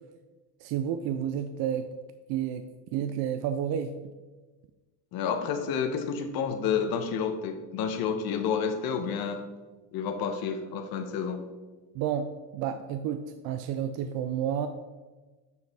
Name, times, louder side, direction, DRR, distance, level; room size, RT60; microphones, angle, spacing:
voice 1, 0.6-1.9 2.3-2.6 2.9-4.0 11.9-14.7, right 9 dB, 65° right, 9 dB, 0.5 m, -30 dB
voice 2, 5.1-9.4 9.9-11.4, left 6 dB, 60° left, 7 dB, 0.9 m, -30 dB
9.4 x 4.7 x 3.5 m, 1.3 s
cardioid pair, 155°, 41 cm